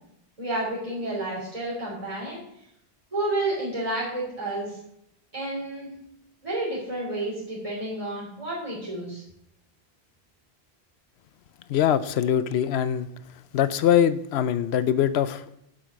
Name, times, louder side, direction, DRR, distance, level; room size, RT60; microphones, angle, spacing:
voice 1, 0.4-2.4 3.1-4.8 5.3-5.9 6.4-9.2, right 1 dB, 35° right, -6 dB, 3.5 m, -30 dB
voice 2, 11.7-13.1 13.5-15.6, left 9 dB, 90° left, 13 dB, 0.9 m, -23 dB
8.7 x 7.8 x 6.4 m, 0.77 s
omnidirectional pair, 1.1 m